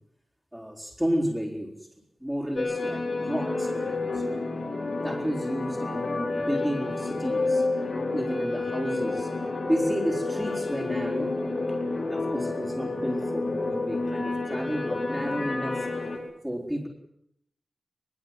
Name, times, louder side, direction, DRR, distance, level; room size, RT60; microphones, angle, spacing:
voice 1, 0.5-1.9 2.2-3.0 3.3-4.2 5.0-7.6 8.1-9.3 9.7-11.4 11.9-15.9 16.4-16.9, equal, 5° right, -5 dB, 4.1 m, -31 dB
sound 1, 2.6-16.2, left 3 dB, 45° left, 5.5 m, -29 dB
22.5 x 22.0 x 7.8 m, 0.75 s
wide cardioid pair, 140°, 0 cm